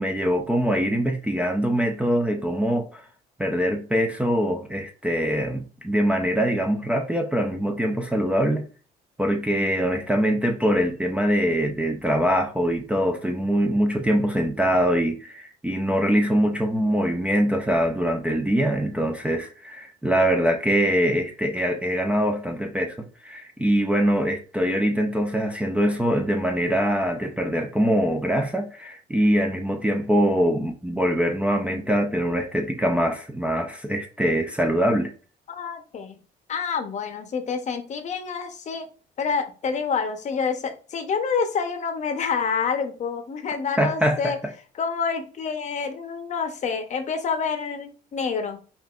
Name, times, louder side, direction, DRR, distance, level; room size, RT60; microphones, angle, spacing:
voice 1, 0.0-3.0 3.4-8.6 9.2-35.1 43.8-44.4, equal, 5° right, 0.5 m, -23 dB
voice 2, 35.5-36.2 36.5-38.9 39.2-44.4 44.8-48.6, left 5 dB, 45° left, 0.8 m, -28 dB
5.6 x 2.5 x 2.4 m
cardioid pair, 110°, 17 cm